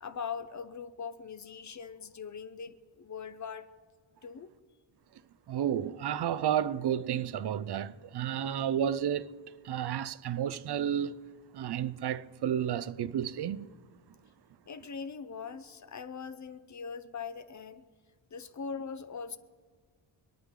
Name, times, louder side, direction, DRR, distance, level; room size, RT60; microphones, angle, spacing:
voice 1, 0.0-3.7 4.2-4.5 14.7-17.8 18.3-19.4, left 6 dB, 40° left, 0.6 m, -41 dB
voice 2, 5.5-9.4 9.6-11.2 11.5-13.8, right 9 dB, 55° right, 0.6 m, -31 dB
25.5 x 10.0 x 3.7 m
wide cardioid pair, 175°, 47 cm